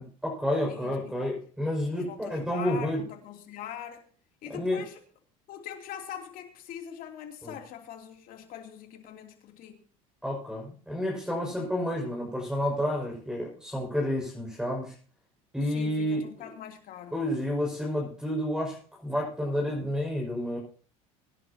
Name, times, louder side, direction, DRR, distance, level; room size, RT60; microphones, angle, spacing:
voice 1, 0.0-3.0 4.5-4.9 7.4-7.5 10.2-14.9 15.5-16.2 17.1-20.6, left 1 dB, 5° right, 5.8 m, -30 dB
voice 2, 0.7-1.2 1.9-4.0 4.4-5.0 5.5-9.8 15.6-17.3, left 9 dB, 60° left, 3.0 m, -42 dB
22.5 x 11.0 x 2.9 m
supercardioid pair, 90°, 17 cm